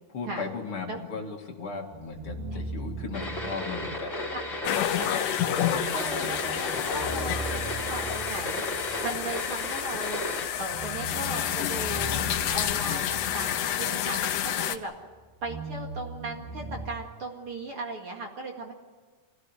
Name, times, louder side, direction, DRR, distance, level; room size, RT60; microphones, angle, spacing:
voice 1, 0.1-4.6, left 4 dB, 45° left, 3 dB, 2.7 m, -37 dB
sound 1, 1.9-4.8 6.0-9.9 10.6-14.6 14.9-16.9, right 2 dB, 80° right, 3.9 m, -40 dB
sound 2, 3.1-10.5, left 1 dB, 20° left, 4.5 m, -34 dB
sound 3, 4.6-14.8, left 11 dB, 75° left, 2.4 m, -29 dB
voice 2, 5.9-8.6 9.0-10.2 10.6-12.2 12.5-14.9 15.4-18.7, right 2 dB, 45° right, 1 dB, 2.6 m, -37 dB
25.5 x 17.0 x 9.8 m, 1.4 s
omnidirectional pair, 3.9 m